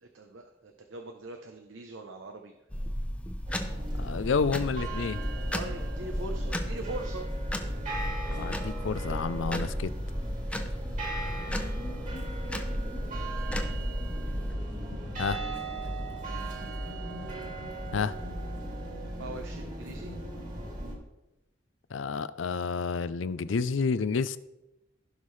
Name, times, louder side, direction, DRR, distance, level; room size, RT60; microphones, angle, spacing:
voice 1, 0.0-2.5 5.5-7.3 19.2-20.1, right 2 dB, 85° right, 4 dB, 0.8 m, -41 dB
sound 1, 2.7-14.5, equal, 5° left, 0.7 m, -34 dB
sound 2, 3.5-20.9, right 1 dB, 45° right, 2.4 m, -37 dB
voice 2, 4.0-5.2 8.3-9.9 15.2-15.4 17.9-18.1 21.9-24.4, left 5 dB, 80° left, 15 dB, 0.5 m, -30 dB
15.5 x 5.6 x 3.2 m, 0.95 s
head